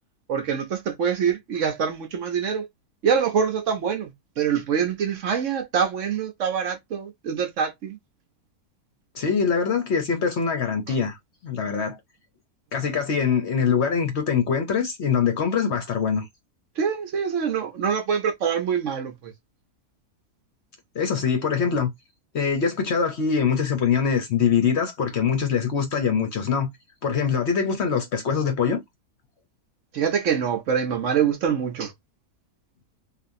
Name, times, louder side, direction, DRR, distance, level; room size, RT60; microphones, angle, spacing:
voice 1, 0.3-2.7 3.0-8.0 10.9-11.0 16.8-19.3 29.9-31.9, right 7 dB, 65° right, 1.0 m, -25 dB
voice 2, 9.1-11.2 11.4-12.0 12.7-16.3 20.9-21.9 22.3-26.7 27.0-28.8, left 6 dB, 55° left, 0.8 m, -23 dB
3.4 x 2.5 x 2.6 m
omnidirectional pair, 1.6 m